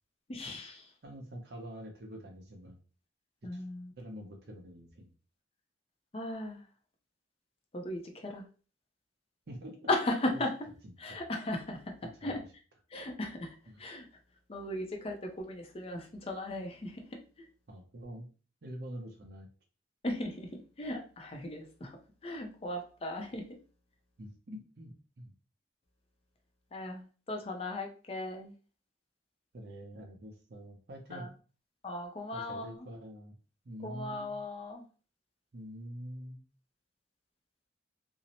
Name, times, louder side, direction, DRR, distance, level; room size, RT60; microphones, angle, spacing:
voice 1, 0.3-0.9 3.4-3.9 6.1-6.7 7.7-8.5 9.9-10.5 11.0-11.9 12.2-12.4 12.9-14.1 14.5-17.5 20.0-23.4 26.7-28.5 31.1-31.3 31.8-32.9 33.8-34.8, left 1 dB, 30° left, 3 dB, 0.4 m, -37 dB
voice 2, 1.0-2.8 3.5-3.6 4.0-5.1 9.5-9.8 10.8-11.2 12.2-12.4 13.7-13.8 17.7-18.3 18.6-19.5 24.2-25.3 29.5-31.3 32.3-33.4 33.6-34.3 35.5-36.4, equal, 60° right, 3 dB, 0.6 m, -46 dB
2.7 x 2.0 x 2.8 m, 0.37 s
head